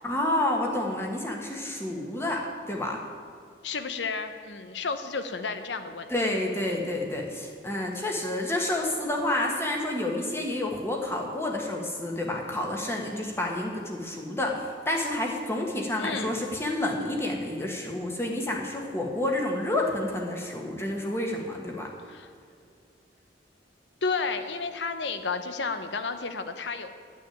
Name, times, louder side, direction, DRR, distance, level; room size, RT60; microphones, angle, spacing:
voice 1, 0.0-3.0 6.1-21.9, left 1 dB, 15° left, 0 dB, 1.4 m, -29 dB
voice 2, 3.6-6.1 16.0-16.5 22.0-22.3 24.0-26.9, left 4 dB, 80° left, 9 dB, 0.9 m, -32 dB
11.0 x 6.2 x 9.2 m, 2.3 s
head